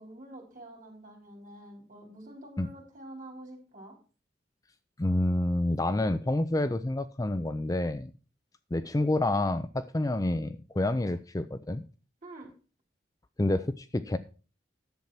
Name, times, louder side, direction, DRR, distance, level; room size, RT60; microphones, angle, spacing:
voice 1, 0.0-4.0 12.2-12.5, right 1 dB, 45° right, 1 dB, 4.5 m, -47 dB
voice 2, 5.0-8.1 8.7-11.8 13.4-14.2, left 2 dB, 20° left, 12 dB, 0.5 m, -28 dB
10.5 x 7.5 x 5.8 m, 0.36 s
head